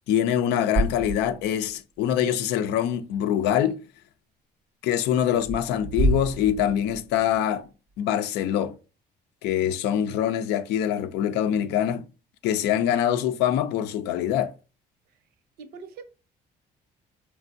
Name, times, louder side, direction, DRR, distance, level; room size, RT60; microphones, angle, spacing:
voice 1, 0.1-3.8 4.8-7.6 8.0-8.7 9.4-12.0 12.4-14.5, left 10 dB, 85° left, 0.5 m, -24 dB
sound 1, 0.7-1.7 2.1-2.2 5.3-7.4, right 1 dB, 30° right, 0.3 m, -28 dB
voice 2, 15.6-16.0, right 5 dB, 70° right, 0.7 m, -43 dB
4.4 x 3.2 x 2.6 m
cardioid pair, 110°, 17 cm